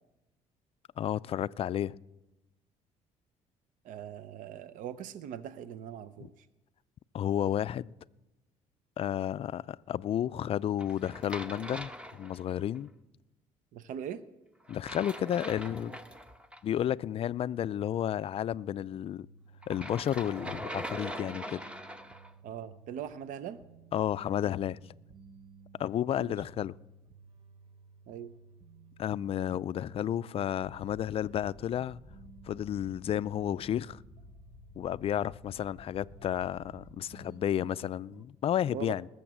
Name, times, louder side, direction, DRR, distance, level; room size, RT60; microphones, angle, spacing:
voice 1, 1.0-2.0 6.2-6.3 7.1-7.9 9.0-12.9 14.7-16.0 16.6-19.3 19.7-21.6 23.9-24.8 25.8-26.7 29.0-32.0 32.5-34.0 34.8-39.1, left 10 dB, 45° left, 0.3 m, -32 dB
voice 2, 3.8-6.5 13.7-14.2 22.4-23.6 26.1-26.3 28.1-28.3 38.7-38.9, right 9 dB, 70° right, 0.6 m, -41 dB
sound 1, 10.8-12.8 14.7-16.6 19.6-22.3, equal, 10° right, 0.9 m, -42 dB
sound 2, 19.2-38.2, right 4 dB, 40° right, 1.0 m, -56 dB
sound 3, 30.6-37.0, left 4 dB, 15° left, 0.9 m, -54 dB
20.0 x 7.2 x 6.1 m
cardioid pair, 90°, 14 cm